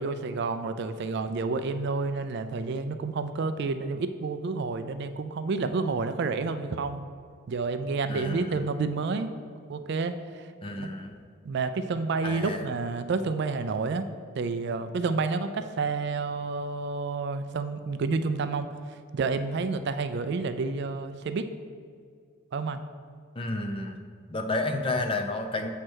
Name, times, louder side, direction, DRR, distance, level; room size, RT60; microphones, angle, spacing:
voice 1, 0.0-7.0 7.5-9.3 9.7-10.5 10.8-10.9 11.4-14.1 14.4-21.5 22.5-22.8, right 4 dB, 50° right, 10 dB, 0.3 m, -30 dB
voice 2, 8.1-8.6 10.6-11.1 12.2-12.7 23.4-24.0 24.3-25.7, left 2 dB, 25° left, 5 dB, 0.4 m, -31 dB
7.5 x 3.3 x 6.2 m, 2.1 s
head